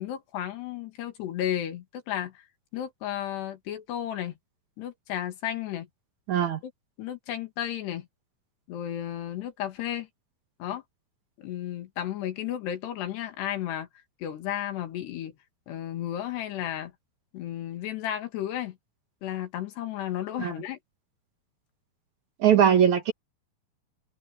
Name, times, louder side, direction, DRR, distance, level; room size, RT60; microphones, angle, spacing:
voice 1, 0.0-2.5 2.7-4.3 4.8-5.9 6.4-6.7 7.0-8.1 8.7-10.1 10.6-10.8 11.4-13.9 14.2-15.4 15.7-16.9 17.3-18.8 19.2-20.8, left 11 dB, 90° left, 4.2 m, -33 dB
voice 2, 6.3-6.6 20.4-20.5 22.4-23.1, right 9 dB, 55° right, 2.6 m, -20 dB
omnidirectional pair, 4.7 m